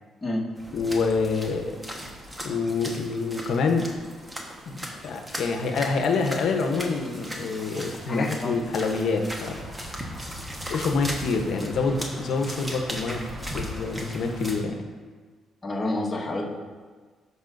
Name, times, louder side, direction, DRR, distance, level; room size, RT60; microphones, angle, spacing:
sound 1, 0.5-14.6, equal, 15° right, 1.2 m, -37 dB
voice 1, 0.7-1.8 2.4-3.9 4.7-9.6 10.7-13.2 13.5-14.8, left 4 dB, 70° left, 4 dB, 0.9 m, -26 dB
voice 2, 8.1-8.6 15.6-16.5, left 1 dB, 20° left, -3 dB, 1.5 m, -28 dB
13.5 x 5.6 x 2.6 m, 1.5 s
cardioid pair, 90°, 0 cm